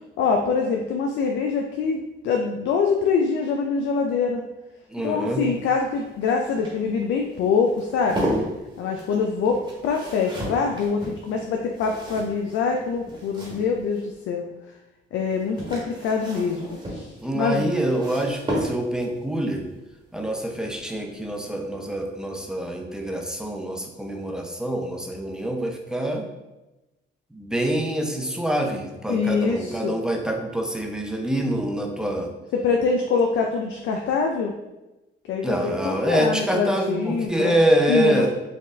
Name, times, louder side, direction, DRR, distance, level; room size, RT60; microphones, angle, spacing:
voice 1, 0.2-2.0 2.2-4.4 5.0-8.3 8.8-14.5 15.1-17.6 29.1-30.0 32.5-34.5 35.3-37.5 37.9-38.3, left 5 dB, 75° left, 2 dB, 0.4 m, -24 dB
voice 2, 4.9-5.4 17.2-19.6 20.1-26.3 27.3-32.3 35.4-38.3, right 1 dB, 5° right, 2 dB, 0.6 m, -25 dB
sound 1, 5.3-14.1 15.2-19.2 20.8-21.1 21.4-21.5, equal, 25° right, 1.3 m, -34 dB
4.2 x 2.4 x 3.2 m, 1.0 s
cardioid pair, 90°, 20 cm